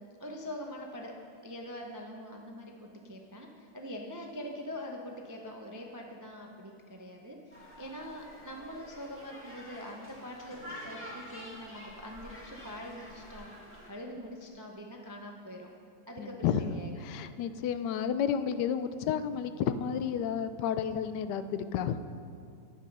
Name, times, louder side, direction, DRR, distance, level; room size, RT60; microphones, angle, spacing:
voice 1, 0.0-13.5 13.9-15.7 16.1-16.9, equal, 30° right, 1 dB, 0.3 m, -44 dB
sound 1, 7.5-13.9, equal, 5° left, 2.2 m, -48 dB
voice 2, 16.2-16.7 17.0-22.0, left 8 dB, 85° left, 11 dB, 1.2 m, -31 dB
11.5 x 8.5 x 5.3 m, 2.5 s
omnidirectional pair, 1.8 m